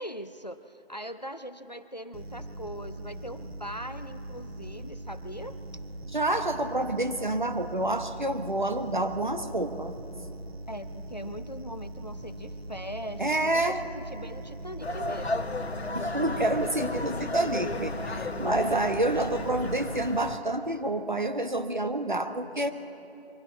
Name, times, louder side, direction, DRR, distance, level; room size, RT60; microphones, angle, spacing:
voice 1, 0.0-5.6 10.7-15.5, equal, 40° left, 11 dB, 0.6 m, -41 dB
sound 1, 2.1-20.1, right 1 dB, 70° right, 1.4 m, -41 dB
voice 2, 6.1-9.9 13.2-13.8 15.9-22.7, right 1 dB, 45° right, 8 dB, 1.1 m, -28 dB
sound 2, 14.8-20.4, left 2 dB, 80° left, 1.2 m, -33 dB
23.0 x 15.0 x 7.9 m, 2.9 s
figure-of-eight pair, 180°, 32 cm